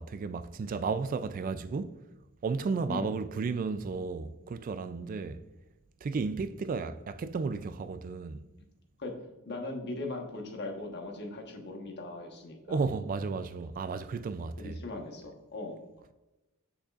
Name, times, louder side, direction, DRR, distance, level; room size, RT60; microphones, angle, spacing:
voice 1, 0.0-2.0 2.4-5.4 6.0-8.5 12.7-14.8, right 4 dB, 40° right, 0.3 m, -33 dB
voice 2, 9.4-12.8 14.6-15.8, left 2 dB, 50° left, 1.2 m, -39 dB
8.2 x 6.4 x 2.4 m
head